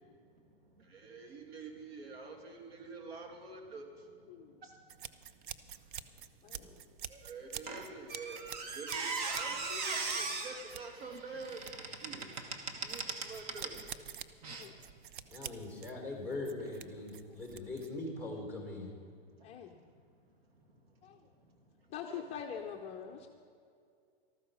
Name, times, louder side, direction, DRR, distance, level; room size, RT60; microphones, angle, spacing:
voice 1, 0.0-5.5 6.4-15.5 17.2-17.4 19.2-22.2, right 3 dB, 80° right, 3 dB, 2.6 m, -50 dB
sound 1, 4.9-18.0, right 9 dB, 55° right, 0.7 m, -48 dB
Squeak, 7.7-13.8 14.4-14.6, right 4 dB, 40° right, 1.4 m, -39 dB
voice 2, 15.3-18.9, left 2 dB, 10° right, -1 dB, 3.3 m, -41 dB
voice 3, 19.4-19.8 21.0-21.2 21.9-23.3, left 8 dB, 20° left, 2 dB, 0.6 m, -44 dB
13.5 x 13.5 x 5.4 m, 2.3 s
hypercardioid pair, 145°, 30 cm